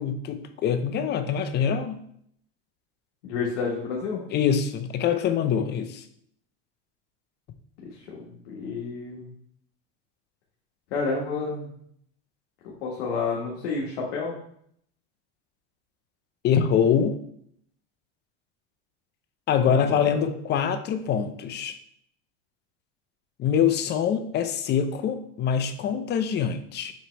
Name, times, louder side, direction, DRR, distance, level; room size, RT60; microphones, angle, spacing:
voice 1, 0.0-2.0 4.3-6.0 16.4-17.2 19.5-21.7 23.4-26.9, left 7 dB, 30° left, 9 dB, 0.6 m, -24 dB
voice 2, 3.2-4.2 7.8-9.3 10.9-11.7 12.8-14.3 19.7-20.2, left 4 dB, 75° left, -3 dB, 1.6 m, -30 dB
7.1 x 3.1 x 4.5 m, 0.68 s
supercardioid pair, 135°, 36 cm